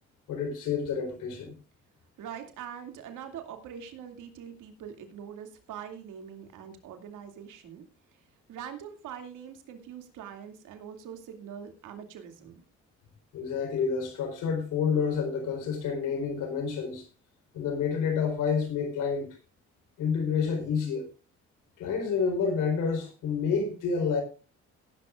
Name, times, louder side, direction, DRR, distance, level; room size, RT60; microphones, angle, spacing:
voice 1, 0.3-1.5 13.3-17.1 17.5-19.4 20.0-21.1 21.8-24.2, left 6 dB, 90° left, 4.2 m, -29 dB
voice 2, 2.2-7.8 8.1-8.2 8.5-12.6, right 8 dB, 85° right, 2.5 m, -43 dB
17.0 x 11.5 x 2.5 m
cardioid pair, 90°, 30 cm